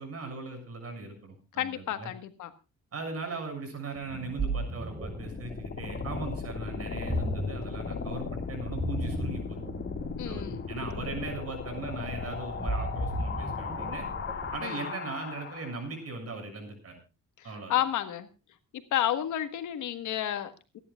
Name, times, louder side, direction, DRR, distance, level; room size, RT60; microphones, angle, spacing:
voice 1, 0.0-2.1 2.9-9.6 10.2-14.1 14.5-17.0 17.4-17.8, right 3 dB, 50° right, 5 dB, 7.0 m, -39 dB
voice 2, 1.6-2.5 10.2-10.7 14.6-14.8 17.7-18.3 18.9-20.8, left 11 dB, 75° left, 9 dB, 1.7 m, -31 dB
Ocean, 3.9-14.7, right 1 dB, 15° right, 5.6 m, -36 dB
sound 1, 5.0-15.9, left 5 dB, 45° left, 2.2 m, -37 dB
28.5 x 11.0 x 2.5 m, 0.30 s
cardioid pair, 90°, 30 cm